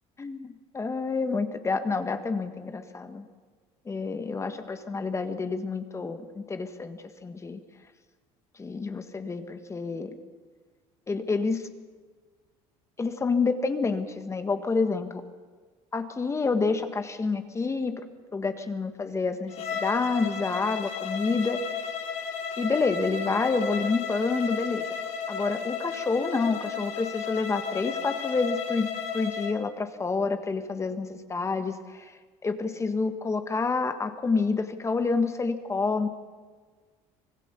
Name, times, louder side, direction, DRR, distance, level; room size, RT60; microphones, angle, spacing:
voice 1, 0.2-3.3 3.8-7.6 8.6-10.1 11.1-11.7 13.0-15.2 15.9-18.0 18.3-19.5 19.8-21.6 22.6-24.9 25.3-28.9 29.1-32.1 32.4-36.1, left 4 dB, 20° left, 8 dB, 1.5 m, -28 dB
Bowed string instrument, 19.5-29.6, left 6 dB, 55° left, 2.6 m, -34 dB
25.5 x 18.0 x 6.9 m, 1.5 s
cardioid pair, 115°, 14 cm